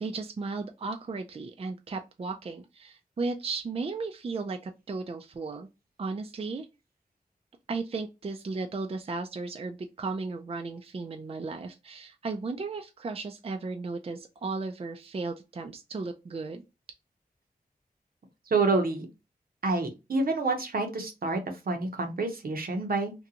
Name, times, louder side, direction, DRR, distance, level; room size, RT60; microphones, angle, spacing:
voice 1, 0.0-5.7 6.0-6.7 7.7-16.6, right 3 dB, 40° right, 5 dB, 0.4 m, -35 dB
voice 2, 18.5-19.1 19.6-23.1, right 3 dB, 70° right, 4 dB, 0.8 m, -28 dB
2.5 x 2.2 x 2.7 m, 0.25 s
cardioid pair, 50°, 16 cm